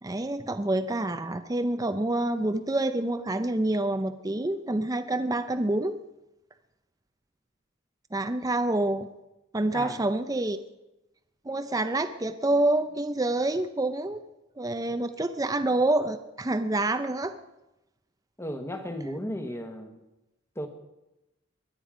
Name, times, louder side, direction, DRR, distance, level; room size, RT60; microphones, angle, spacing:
voice 1, 0.0-6.0 8.1-9.1 9.5-10.6 11.5-14.2 14.6-17.3, right 2 dB, 15° right, 9 dB, 0.5 m, -27 dB
voice 2, 18.4-20.0 20.5-20.7, equal, 10° left, 6 dB, 1.3 m, -35 dB
22.0 x 8.9 x 5.0 m, 0.93 s
head